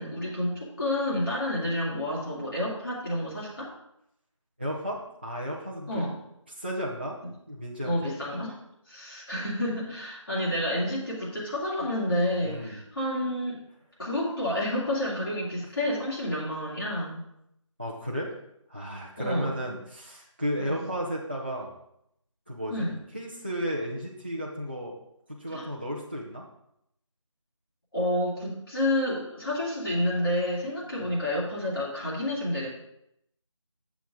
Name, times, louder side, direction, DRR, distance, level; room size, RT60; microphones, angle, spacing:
voice 1, 0.0-3.7 5.9-6.2 7.8-8.5 8.9-13.6 14.0-17.2 19.2-19.5 20.6-20.8 22.7-22.9 25.5-25.7 27.9-32.7, left 1 dB, 45° left, -7 dB, 2.4 m, -29 dB
voice 2, 4.6-6.1 6.6-7.2 7.5-8.2 12.4-12.8 17.8-18.4 18.7-21.7 22.5-22.9 23.1-25.0 25.3-26.5 31.0-31.2, equal, 20° right, -5 dB, 0.5 m, -34 dB
8.2 x 7.1 x 3.6 m, 0.77 s
figure-of-eight pair, 165°, 17 cm